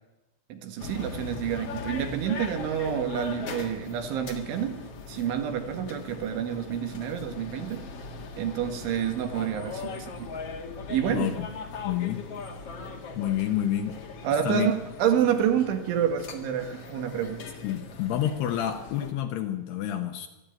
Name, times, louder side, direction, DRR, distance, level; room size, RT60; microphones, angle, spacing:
voice 1, 0.5-4.8 5.1-7.8 8.4-10.3 10.9-11.3 14.2-17.4, right 9 dB, 90° right, 6 dB, 4.2 m, -28 dB
sound 1, 0.8-19.1, left 4 dB, 55° left, 1.7 m, -40 dB
voice 2, 11.1-11.5 11.8-12.3 13.1-14.0 14.4-14.7 17.6-20.3, left 11 dB, 70° left, 6 dB, 2.9 m, -28 dB
24.5 x 11.5 x 9.3 m, 1.0 s
omnidirectional pair, 5.4 m